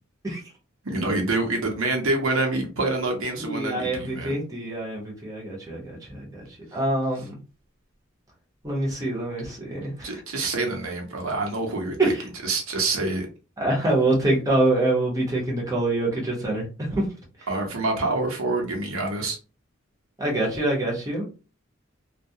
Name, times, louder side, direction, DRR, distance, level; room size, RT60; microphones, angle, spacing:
voice 1, 0.8-4.4 10.0-12.1 12.4-13.3 17.5-19.4, right 2 dB, 80° right, 0.8 m, -26 dB
voice 2, 3.4-6.5 6.7-7.4 8.6-10.2 12.0-12.2 13.6-16.6 16.9-17.1 20.2-21.2, right 2 dB, 15° right, 0.8 m, -25 dB
2.3 x 2.1 x 2.7 m
head